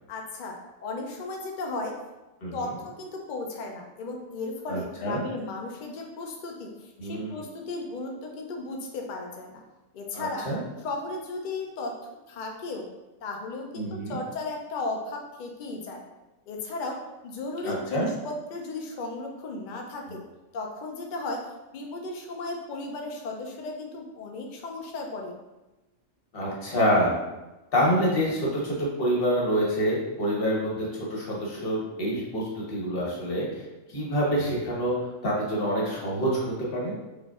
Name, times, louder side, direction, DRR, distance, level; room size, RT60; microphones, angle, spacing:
voice 1, 0.1-0.6 0.8-1.9 2.5-9.6 9.9-10.5 10.8-11.9 12.3-12.9 13.2-16.0 16.5-17.0 17.2-20.2 20.5-21.4 21.7-25.4, left 3 dB, 75° left, 1 dB, 0.4 m, -35 dB
voice 2, 4.7-5.2 7.0-7.3 10.1-10.6 13.7-14.2 17.6-18.1 26.3-27.1 27.7-33.6 33.9-35.0 35.2-36.9, equal, 50° left, -4 dB, 1.1 m, -27 dB
4.8 x 2.5 x 2.3 m, 1.0 s
omnidirectional pair, 1.3 m